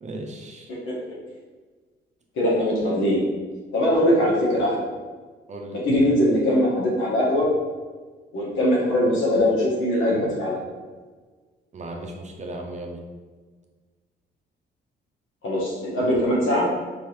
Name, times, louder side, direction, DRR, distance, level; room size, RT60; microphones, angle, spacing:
voice 1, 0.0-0.7 5.5-5.8 11.7-13.0, right 1 dB, 35° right, 1 dB, 0.6 m, -36 dB
voice 2, 2.4-3.2 3.7-4.9 5.7-7.5 8.3-10.6 15.4-16.7, left 1 dB, 90° left, -4 dB, 1.3 m, -21 dB
4.7 x 2.9 x 3.2 m, 1.4 s
cardioid pair, 90°, 20 cm